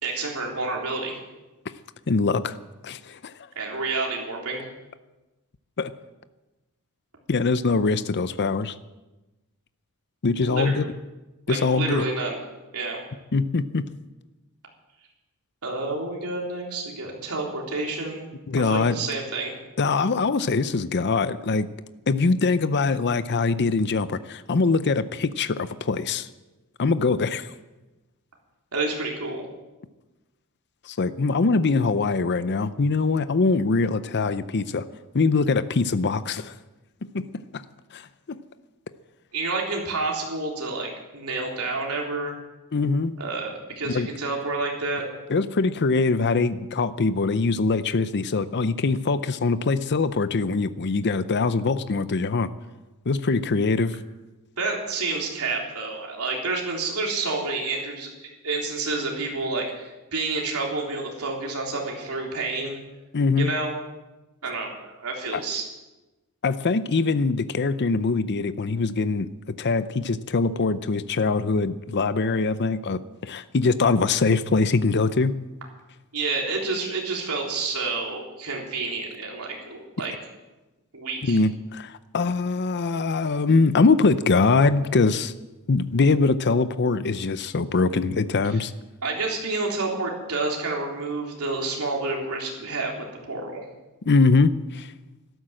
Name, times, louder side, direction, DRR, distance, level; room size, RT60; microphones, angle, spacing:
voice 1, 0.0-1.2 3.6-4.6 10.4-10.9 11.5-12.4 12.7-13.0 15.6-18.2 18.6-19.5 28.7-29.4 39.3-42.3 43.2-45.0 54.6-62.8 63.4-63.7 64.4-65.6 76.1-80.1 80.9-81.4 89.0-93.6, right 3 dB, 85° right, -1 dB, 3.7 m, -29 dB
voice 2, 2.1-2.6 2.8-3.3 5.8-5.9 7.3-8.7 10.2-10.8 11.5-12.0 13.3-13.8 18.5-18.9 19.8-21.7 22.1-26.3 26.8-27.5 30.9-34.8 35.1-36.5 37.1-37.2 37.5-37.6 37.9-38.0 38.3-38.4 42.7-43.1 43.8-44.1 45.3-52.5 53.1-54.0 63.1-63.5 65.3-65.4 66.4-69.3 69.6-75.4 81.2-85.3 85.7-88.7 94.1-94.9, left 4 dB, 50° left, 13 dB, 0.6 m, -23 dB
12.5 x 12.5 x 7.6 m, 1.1 s
head